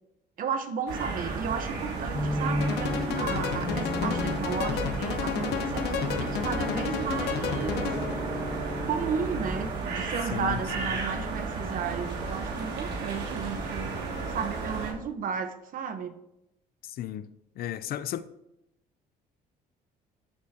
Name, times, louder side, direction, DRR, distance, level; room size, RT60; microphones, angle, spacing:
voice 1, 0.4-7.9 8.8-13.9 14.3-16.2, right 6 dB, 55° right, 1.1 m, -34 dB
sound 1, 0.9-14.9, right 3 dB, 80° right, 3.0 m, -33 dB
sound 2, 2.1-9.7, left 1 dB, 10° left, 0.4 m, -36 dB
sound 3, 2.6-8.2, left 8 dB, 80° left, 1.1 m, -32 dB
voice 2, 10.3-10.9 16.8-17.3 17.6-18.2, left 12 dB, 65° left, 0.6 m, -34 dB
13.5 x 8.4 x 2.9 m
cardioid pair, 110°, 17 cm